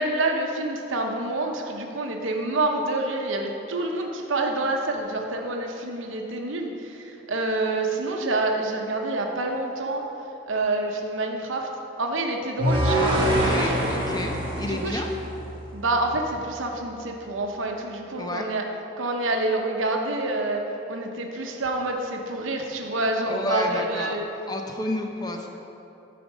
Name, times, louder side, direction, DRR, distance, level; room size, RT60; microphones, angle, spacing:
voice 1, 0.0-10.1 10.5-11.7 12.0-13.9 14.6-15.0 15.7-18.6 19.0-24.3, right 2 dB, 80° right, 2 dB, 0.8 m, -27 dB
sound 1, 12.6-15.8, right 1 dB, 25° right, 1.4 m, -24 dB
voice 2, 12.9-15.1 18.2-18.5 23.2-24.2 24.5-25.5, left 1 dB, 20° left, 3 dB, 0.7 m, -31 dB
11.0 x 5.1 x 5.1 m, 3.0 s
head